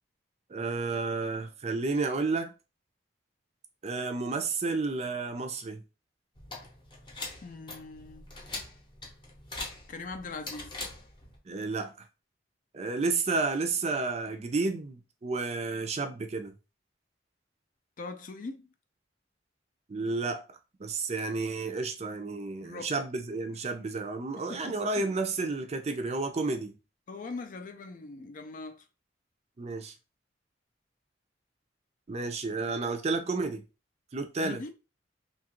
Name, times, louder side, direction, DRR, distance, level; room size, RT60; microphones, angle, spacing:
voice 1, 0.5-2.5 3.8-5.8 11.5-11.9 12.7-16.5 19.9-20.4 20.8-26.8 29.6-29.9 32.1-33.6 34.1-34.6, right 3 dB, 35° right, 0.4 m, -31 dB
sound 1, 6.4-11.4, left 2 dB, 25° left, 0.8 m, -42 dB
voice 2, 7.4-8.2 9.9-10.9 18.0-18.7 22.6-22.9 24.5-25.0 27.1-28.8 34.4-34.7, left 3 dB, 45° left, 0.4 m, -41 dB
2.8 x 2.4 x 2.9 m
head